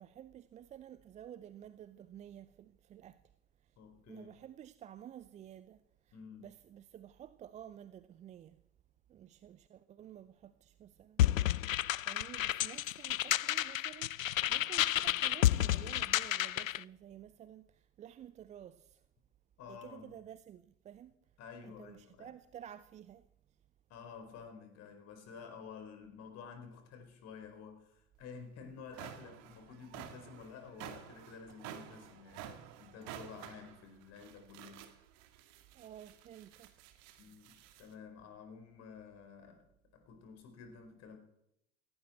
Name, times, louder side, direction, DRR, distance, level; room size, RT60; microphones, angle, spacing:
voice 1, 0.0-3.2 4.1-5.8 6.1-8.6 9.1-11.4 12.1-19.0 19.7-21.1 21.6-23.2 35.7-36.7, right 10 dB, 20° right, 0.5 m, -52 dB
voice 2, 3.8-4.3 6.1-6.5 19.6-20.1 21.4-22.3 23.9-34.9 37.2-41.2, left 6 dB, 40° left, 4.6 m, -51 dB
sound 1, 11.2-16.8, left 12 dB, 75° left, 0.5 m, -31 dB
sound 2, 28.2-28.3 28.7-37.9, right 10 dB, 45° right, 2.0 m, -51 dB
17.5 x 17.0 x 4.4 m
figure-of-eight pair, 80°, 40 cm